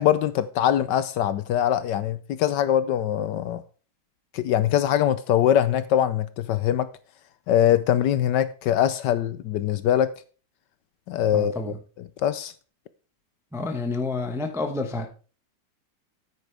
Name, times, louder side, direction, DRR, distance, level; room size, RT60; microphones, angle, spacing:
voice 1, 0.0-3.6 4.3-6.9 7.5-10.1 11.1-11.7 12.2-12.5, left 10 dB, 75° left, 1.1 m, -22 dB
voice 2, 11.3-11.8 13.5-15.1, left 3 dB, 5° right, 0.6 m, -29 dB
9.5 x 9.2 x 3.4 m
omnidirectional pair, 2.1 m